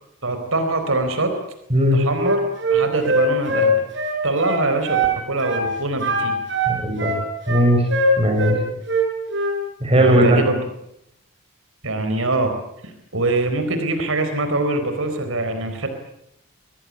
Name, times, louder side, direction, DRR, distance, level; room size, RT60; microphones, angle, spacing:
voice 1, 0.2-1.3 1.9-2.4 2.7-3.7 4.2-5.0 5.3-6.4 10.0-10.6 11.8-12.5 12.8-15.9, right 2 dB, 75° right, 6 dB, 4.3 m, -23 dB
voice 2, 1.7-2.0 6.6-7.1 7.5-7.8 8.2-8.6 9.8-10.4, equal, 25° right, 3 dB, 6.4 m, -17 dB
Wind instrument woodwind instrument, 2.2-5.2 5.4-5.7 6.0-8.6 8.9-9.6, right 1 dB, 55° right, 7.1 m, -21 dB
25.5 x 19.5 x 9.8 m, 0.78 s
head